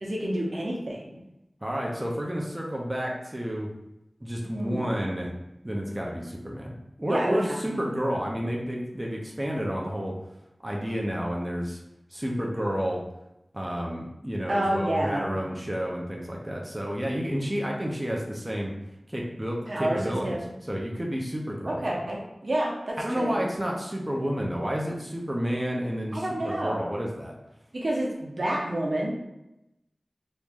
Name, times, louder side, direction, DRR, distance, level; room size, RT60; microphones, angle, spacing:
voice 1, 0.0-1.2 4.5-4.9 7.1-7.8 14.5-15.3 19.7-20.5 21.7-23.5 26.1-26.8 27.7-29.1, right 1 dB, 60° right, -3 dB, 0.8 m, -29 dB
voice 2, 1.6-3.7 4.2-5.3 5.6-6.7 7.0-10.2 10.6-11.8 12.1-13.0 13.5-18.7 19.1-20.4 20.7-22.0 23.0-27.3, equal, 20° right, -2 dB, 0.6 m, -30 dB
3.0 x 2.5 x 3.6 m, 0.90 s
wide cardioid pair, 70°, 0 cm